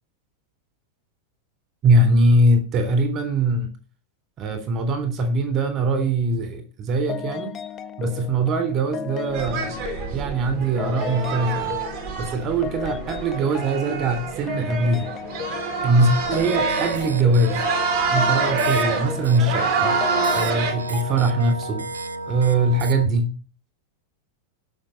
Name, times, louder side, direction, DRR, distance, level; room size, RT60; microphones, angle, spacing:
voice 1, 1.8-3.7 4.4-7.5 8.0-9.7 10.1-11.8 12.2-15.1 15.8-17.6 18.1-19.9 20.3-21.8 22.3-23.3, right 2 dB, 35° right, 3.5 m, -22 dB
sound 1, 7.1-21.9, left 9 dB, 30° left, 1.2 m, -35 dB
sound 2, 9.3-20.7, right 4 dB, 50° right, 4.6 m, -27 dB
sound 3, 16.0-23.1, right 2 dB, 70° right, 1.0 m, -31 dB
14.5 x 6.0 x 8.7 m
figure-of-eight pair, 90°, 0 cm